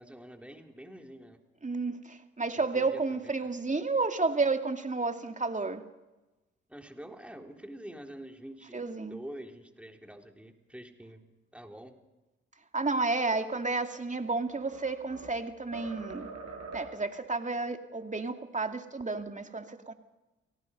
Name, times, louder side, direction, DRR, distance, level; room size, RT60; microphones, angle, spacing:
voice 1, 0.0-1.4 2.5-3.2 6.7-11.3 11.5-11.9, right 1 dB, 5° right, 3 dB, 3.7 m, -46 dB
voice 2, 1.6-5.8 8.7-9.2 12.7-16.3 16.7-19.9, right 3 dB, 25° right, 6 dB, 2.4 m, -31 dB
sound 1, 14.0-15.4 15.7-17.1, right 4 dB, 60° right, 5.5 m, -44 dB
29.0 x 18.5 x 5.4 m, 1.1 s
hypercardioid pair, 40°, 29 cm